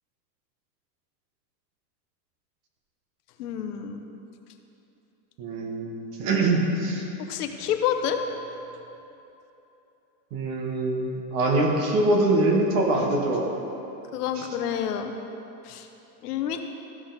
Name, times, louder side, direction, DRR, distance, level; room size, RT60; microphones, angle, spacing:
voice 1, 3.4-4.0 7.3-8.2 14.1-15.1 15.6-15.9 16.2-16.7, left 9 dB, 65° left, 6 dB, 0.9 m, -28 dB
voice 2, 5.4-7.1 10.3-13.5 14.4-14.5, right 2 dB, 30° right, 1 dB, 1.1 m, -24 dB
14.0 x 6.3 x 3.9 m, 3.0 s
supercardioid pair, 175°, 50 cm